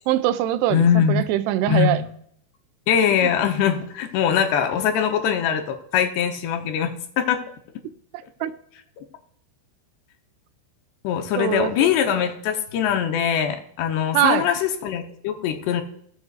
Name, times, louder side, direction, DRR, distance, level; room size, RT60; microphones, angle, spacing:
voice 1, 0.1-2.0 3.2-3.3 8.4-8.5 11.4-11.9 14.1-14.5, right 13 dB, 85° right, 12 dB, 2.5 m, -22 dB
voice 2, 0.7-1.2 1.7-2.0 2.9-7.4 11.0-15.8, left 8 dB, 80° left, 5 dB, 3.0 m, -22 dB
16.5 x 7.8 x 2.4 m, 0.66 s
omnidirectional pair, 4.9 m